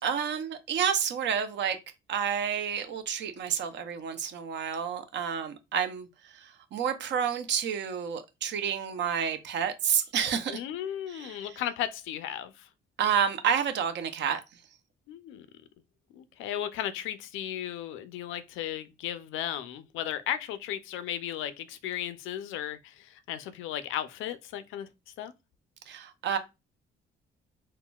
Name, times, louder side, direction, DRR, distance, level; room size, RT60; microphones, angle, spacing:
voice 1, 0.0-1.8 2.1-10.6 11.1-11.5 13.0-14.4 25.9-26.4, right 8 dB, 65° right, 0.6 m, -29 dB
voice 2, 10.5-12.7 15.1-15.5 16.1-24.9 25.2-25.3, left 11 dB, 90° left, 0.4 m, -35 dB
3.7 x 2.1 x 2.2 m
cardioid pair, 90°, 20 cm